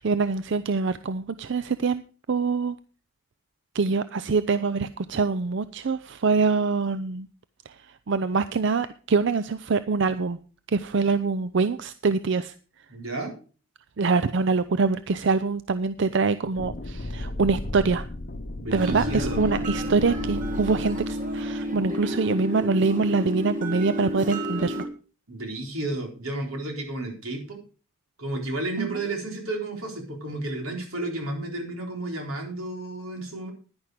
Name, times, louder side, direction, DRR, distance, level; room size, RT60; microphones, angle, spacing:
voice 1, 0.0-2.0 2.3-2.8 3.7-7.3 8.1-10.4 10.7-12.5 14.0-18.1 18.7-24.9 28.8-28.9, right 4 dB, 55° right, 12 dB, 0.5 m, -24 dB
voice 2, 12.9-13.4 18.6-19.5 25.3-27.6 28.2-33.5, right 2 dB, 90° right, 1 dB, 4.0 m, -32 dB
sound 1, 16.6-21.9, left 2 dB, 45° left, 0.8 m, -34 dB
sound 2, 18.7-24.9, equal, 40° right, 1.7 m, -31 dB
10.5 x 10.5 x 4.9 m, 0.37 s
head